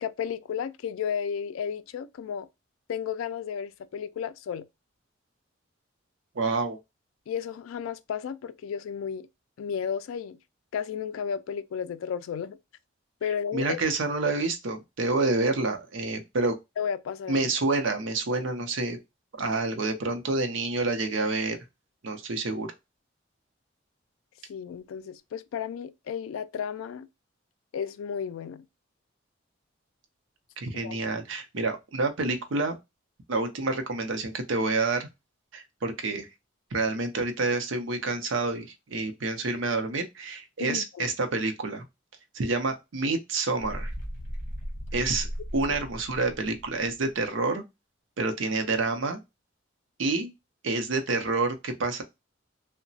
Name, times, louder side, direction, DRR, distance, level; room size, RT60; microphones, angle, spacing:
voice 1, 0.0-2.5 2.9-4.7 7.3-9.3 9.6-10.4 10.7-12.6 13.2-13.9 16.8-17.5 24.5-27.1 27.7-28.6 30.7-31.0 31.6-31.7 40.6-41.1 45.7-45.8, left 7 dB, 90° left, 0.3 m, -33 dB
voice 2, 6.4-6.8 13.5-16.6 17.3-19.0 19.4-21.6 22.0-22.7 30.6-32.7 33.3-35.1 35.5-36.3 36.7-41.8 42.3-43.9 44.9-45.3 45.5-47.6 48.2-49.2 50.0-50.3 50.6-52.0, right 3 dB, 70° right, 0.6 m, -28 dB
sound 1, 43.6-47.2, equal, 40° left, 0.9 m, -37 dB
2.9 x 2.1 x 2.6 m
head